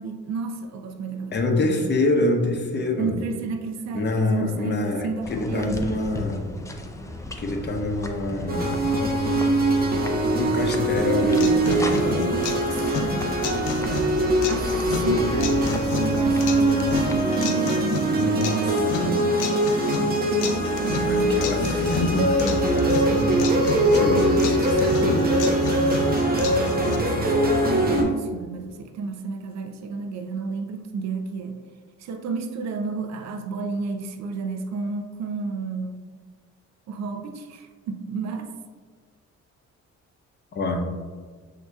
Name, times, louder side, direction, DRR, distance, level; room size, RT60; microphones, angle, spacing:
voice 1, 0.0-1.9 3.0-6.0 12.2-13.4 14.5-18.8 26.9-31.6 32.0-36.1 36.9-38.5, right 4 dB, 60° right, 6 dB, 0.5 m, -32 dB
voice 2, 1.3-3.2 3.9-6.5 7.4-8.8 10.3-12.4 14.8-15.4 18.1-19.2 21.1-23.5 23.9-25.3 40.5-40.9, left 2 dB, 35° left, 2 dB, 0.8 m, -26 dB
sound 1, 5.2-17.2, left 1 dB, 10° left, 0.4 m, -36 dB
sound 2, 8.5-28.0, right 1 dB, 30° right, 0.9 m, -22 dB
sound 3, 11.0-27.0, left 5 dB, 90° left, 0.6 m, -33 dB
7.6 x 2.8 x 2.3 m, 1.5 s
cardioid pair, 90°, 30 cm